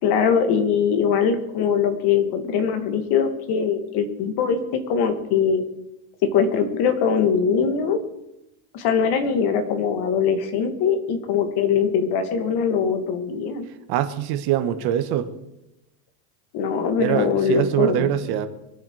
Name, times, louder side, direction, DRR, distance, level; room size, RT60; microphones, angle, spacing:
voice 1, 0.0-5.6 6.2-8.0 8.7-13.6 16.5-18.1, left 6 dB, 50° left, 7 dB, 2.5 m, -22 dB
voice 2, 13.9-15.3 17.0-18.5, right 11 dB, 50° right, 8 dB, 1.5 m, -23 dB
24.5 x 8.6 x 4.9 m, 0.88 s
supercardioid pair, 130°, 48 cm